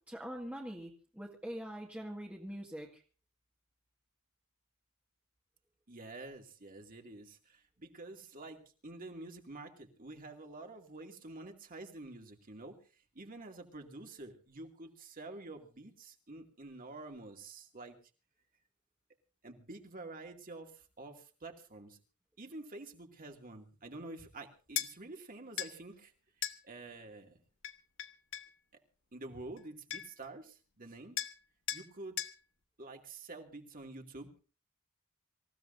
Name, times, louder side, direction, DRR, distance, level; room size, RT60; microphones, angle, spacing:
voice 1, 0.0-3.0, equal, 5° right, -1 dB, 1.9 m, -43 dB
voice 2, 5.9-18.0 19.4-22.0 22.4-26.1 26.6-27.4 29.1-31.2 31.7-32.2 32.8-34.4, right 2 dB, 40° right, 3 dB, 2.4 m, -48 dB
sound 1, 24.8-24.9 25.6-25.7 26.4-26.6 27.6-28.5 29.6-29.7 29.9-30.2 31.2-31.4 31.7-31.9 32.2-32.4, left 12 dB, 60° left, 1.0 m, -38 dB
26.0 x 16.0 x 2.7 m, 0.35 s
head